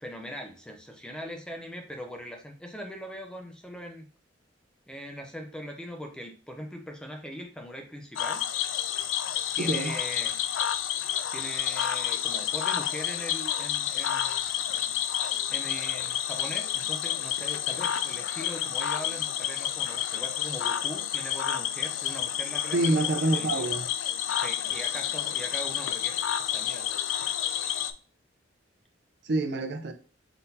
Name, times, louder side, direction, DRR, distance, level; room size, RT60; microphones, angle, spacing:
voice 1, 0.0-4.1 4.9-8.4 9.6-10.3 11.3-14.3 15.5-23.7 24.4-26.1 26.5-27.0, equal, 5° left, 0.5 m, -40 dB
Cricket / Frog, 8.1-27.9, left 10 dB, 80° left, 0.4 m, -30 dB
voice 2, 9.6-10.0 22.7-23.9 29.2-29.9, right 2 dB, 60° right, 0.6 m, -27 dB
3.9 x 3.9 x 2.7 m
head